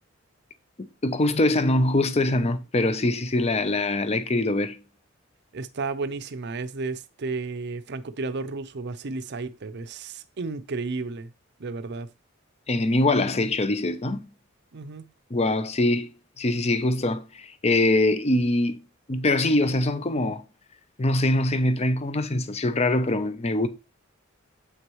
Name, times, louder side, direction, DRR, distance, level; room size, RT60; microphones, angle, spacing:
voice 1, 0.8-4.8 12.7-14.2 15.3-16.1 16.4-18.8 19.1-20.4 21.0-23.7, left 2 dB, 30° left, 0.7 m, -23 dB
voice 2, 5.5-11.3 11.6-12.1 14.7-15.1, right 3 dB, 55° right, 0.6 m, -33 dB
7.9 x 6.0 x 3.1 m
head